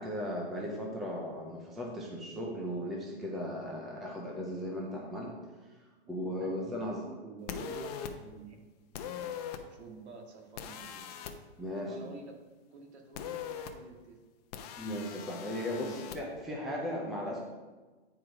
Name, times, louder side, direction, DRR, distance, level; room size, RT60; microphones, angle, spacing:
voice 1, 0.0-5.3 6.1-7.0 11.6-12.1 14.8-17.4, equal, ahead, -3 dB, 0.3 m, -37 dB
voice 2, 6.1-9.3 9.7-11.1 11.8-12.4 12.7-14.2 15.5-16.1, right 3 dB, 70° right, 2 dB, 2.1 m, -50 dB
sound 1, 7.5-8.1 8.9-9.6 10.6-11.3 13.2-13.7 14.5-16.2, left 8 dB, 35° left, 0.7 m, -41 dB
9.2 x 4.7 x 5.0 m, 1.3 s
hypercardioid pair, 145°, 34 cm